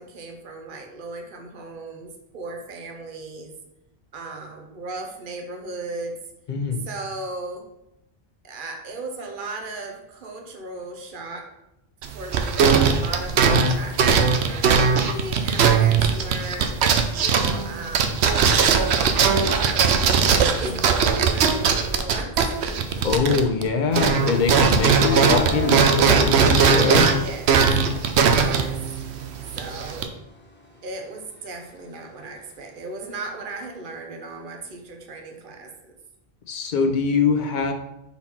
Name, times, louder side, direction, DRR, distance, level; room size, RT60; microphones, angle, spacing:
voice 1, 0.0-3.5 4.1-6.2 6.8-7.6 8.4-11.5 12.1-16.7 17.2-18.3 18.6-22.3 22.6-22.8 27.0-27.6 28.3-28.8 29.6-30.1 30.8-35.9, right 2 dB, 55° right, 3 dB, 1.0 m, -36 dB
voice 2, 6.5-6.8 23.0-27.1 36.5-37.7, left 5 dB, 50° left, 4 dB, 0.8 m, -23 dB
sound 1, 12.0-23.7 23.9-30.1, right 6 dB, 80° right, 0.9 m, -20 dB
sound 2, 24.0-27.9 28.3-31.9, equal, 10° left, 1.0 m, -34 dB
5.6 x 4.3 x 4.3 m, 0.85 s
omnidirectional pair, 1.1 m